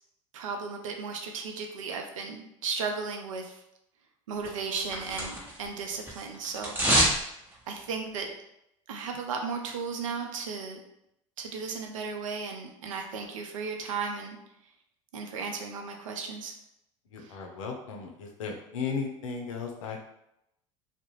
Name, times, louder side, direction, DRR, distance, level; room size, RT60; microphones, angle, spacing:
voice 1, 0.3-3.6 4.3-7.1 7.7-8.3 8.9-10.8 11.4-14.4 15.1-16.5 17.2-17.4, right 5 dB, 85° right, 3 dB, 0.4 m, -35 dB
sound 1, 4.4-5.7 5.9-7.2 7.5-7.6, right 1 dB, 10° right, 0.9 m, -26 dB
voice 2, 17.1-20.0, left 5 dB, 80° left, 2 dB, 0.5 m, -35 dB
2.3 x 2.0 x 3.0 m, 0.80 s
hypercardioid pair, 75°, 16 cm